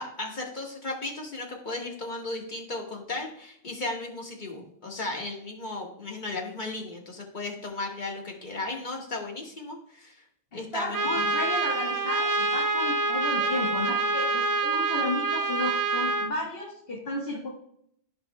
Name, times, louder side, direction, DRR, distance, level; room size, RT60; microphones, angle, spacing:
voice 1, 0.0-10.2 10.5-11.2, left 2 dB, 45° left, 0 dB, 1.6 m, -35 dB
voice 2, 10.5-17.5, left 2 dB, 60° left, -3 dB, 1.6 m, -33 dB
Trumpet, 10.9-16.3, right 3 dB, 30° right, 0.4 m, -26 dB
14.0 x 5.2 x 2.2 m, 0.70 s
omnidirectional pair, 1.1 m